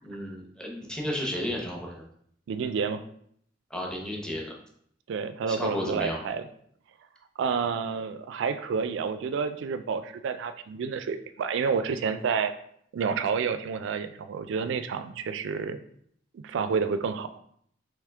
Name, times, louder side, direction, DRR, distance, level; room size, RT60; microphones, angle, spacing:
voice 1, 0.0-2.0 3.7-4.5 5.5-6.2, equal, 5° left, -1 dB, 0.7 m, -33 dB
voice 2, 2.5-3.0 5.1-6.4 7.4-12.5 12.9-15.8 16.3-17.3, right 5 dB, 65° right, 11 dB, 0.3 m, -29 dB
3.5 x 3.1 x 3.3 m, 0.67 s
head